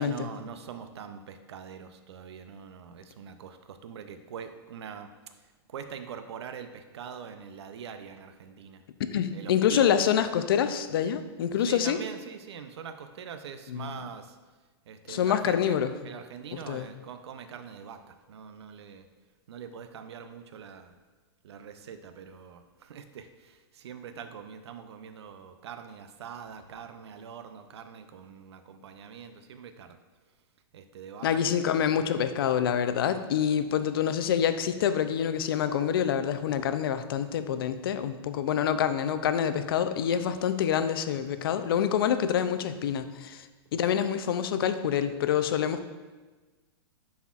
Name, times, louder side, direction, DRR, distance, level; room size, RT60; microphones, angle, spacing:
voice 1, 0.0-5.1 5.7-8.8 9.3-10.0 11.6-14.4 14.9-15.8 16.0-19.0 19.5-20.9 21.4-30.0 30.7-31.6 39.0-39.1, right 7 dB, 85° right, 8 dB, 0.5 m, -43 dB
voice 2, 9.1-12.0 13.7-13.9 15.1-15.9 16.5-16.9 31.2-43.5 43.7-45.9, left 8 dB, 60° left, 11 dB, 0.4 m, -26 dB
9.3 x 4.2 x 2.4 m, 1.3 s
supercardioid pair, 175°, 14 cm